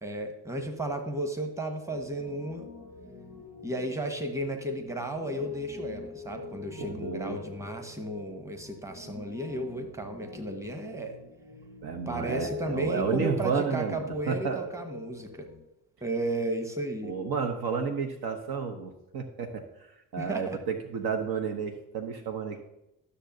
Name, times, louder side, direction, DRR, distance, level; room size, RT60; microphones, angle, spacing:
voice 1, 0.0-2.7 3.6-11.1 12.1-15.5 16.0-17.1 20.2-20.6, right 1 dB, 5° right, 5 dB, 1.4 m, -34 dB
Piano, 1.9-15.6, left 3 dB, 90° right, 1.9 m, -45 dB
voice 2, 6.8-7.4 11.8-14.7 17.0-22.6, right 5 dB, 50° right, 5 dB, 1.0 m, -31 dB
13.0 x 6.7 x 2.7 m, 0.89 s
figure-of-eight pair, 45°, 49 cm